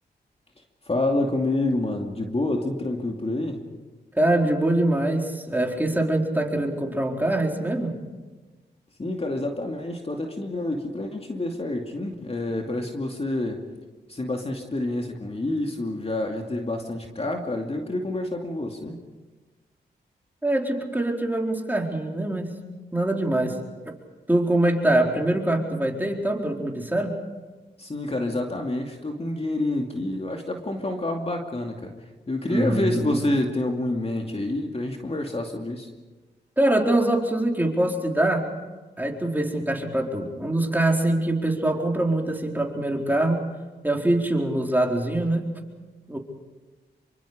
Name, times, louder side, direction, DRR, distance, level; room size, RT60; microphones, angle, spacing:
voice 1, 0.9-3.6 9.0-13.6 14.1-19.0 27.8-31.9 32.3-35.9, left 2 dB, 35° left, 2 dB, 2.6 m, -28 dB
voice 2, 4.1-8.0 20.4-22.7 22.9-23.6 24.3-27.2 32.5-33.2 36.6-38.4 39.0-43.4 43.8-45.5 46.1-46.2, right 1 dB, 10° right, 1 dB, 4.4 m, -24 dB
27.0 x 24.0 x 5.1 m, 1.3 s
cardioid pair, 55°, 18 cm